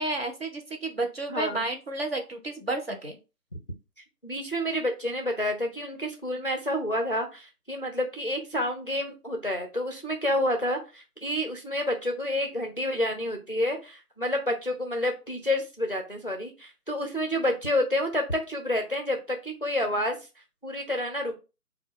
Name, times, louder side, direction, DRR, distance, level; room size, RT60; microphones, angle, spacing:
voice 1, 0.0-3.2, right 2 dB, 40° right, 3 dB, 0.7 m, -31 dB
voice 2, 1.3-1.6 4.2-20.2 20.6-21.3, left 1 dB, 40° left, 3 dB, 0.4 m, -29 dB
3.6 x 2.2 x 3.6 m, 0.30 s
figure-of-eight pair, 160°, 46 cm